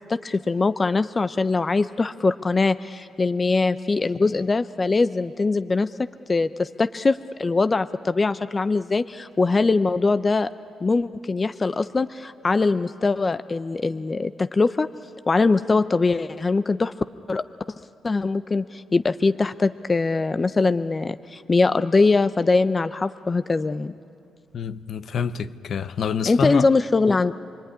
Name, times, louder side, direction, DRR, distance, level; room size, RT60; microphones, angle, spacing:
voice 1, 0.1-5.9 6.3-10.5 10.8-14.9 15.3-16.9 17.3-17.4 18.0-23.9 26.3-27.3, left 3 dB, 25° left, 0.6 m, -22 dB
voice 2, 24.5-26.7, left 6 dB, 60° left, 0.8 m, -27 dB
27.5 x 21.5 x 9.9 m
cardioid pair, 90°, 0 cm